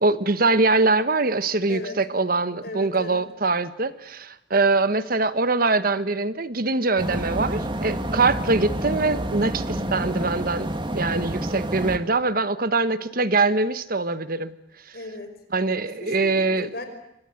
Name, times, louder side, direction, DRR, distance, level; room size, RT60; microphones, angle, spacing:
voice 1, 0.0-10.7 10.9-14.5 15.5-16.7, right 3 dB, 50° right, 13 dB, 1.3 m, -23 dB
voice 2, 1.7-2.0 2.6-3.2 14.9-15.3 15.8-16.8, left 2 dB, 55° left, 7 dB, 5.4 m, -37 dB
sound 1, 7.0-12.0, right 1 dB, 25° right, 2.2 m, -28 dB
28.0 x 25.0 x 8.0 m, 0.79 s
head